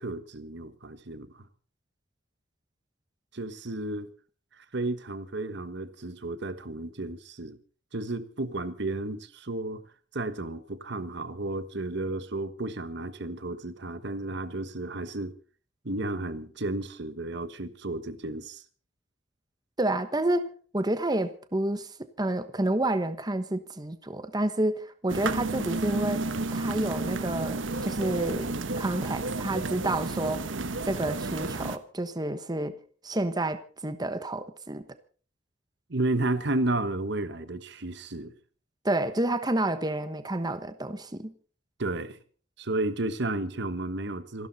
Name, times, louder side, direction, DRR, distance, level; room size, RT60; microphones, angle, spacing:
voice 1, 0.0-1.5 3.3-4.1 4.5-7.6 7.9-9.8 10.1-15.3 15.8-18.6 35.9-38.3 41.8-42.2 42.6-44.5, right 2 dB, 65° right, 1.3 m, -32 dB
voice 2, 19.8-21.9 22.2-26.2 26.5-30.5 30.8-32.8 33.0-34.8 38.8-41.3, right 1 dB, 20° right, 1.1 m, -29 dB
sound 1, 25.1-31.8, right 2 dB, 85° right, 1.3 m, -31 dB
27.0 x 12.5 x 4.2 m
head